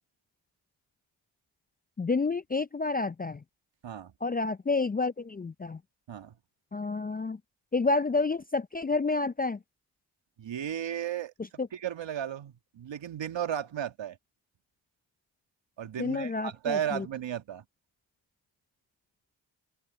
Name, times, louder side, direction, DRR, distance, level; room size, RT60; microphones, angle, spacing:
voice 1, 2.0-3.4 4.2-5.8 6.7-7.4 7.7-9.6 11.6-11.7 16.0-17.1, left 3 dB, 20° left, 0.5 m, -29 dB
voice 2, 10.4-11.3 11.7-14.2 15.8-17.6, right 10 dB, 60° right, 2.1 m, -34 dB
open air
hypercardioid pair, 40°, 49 cm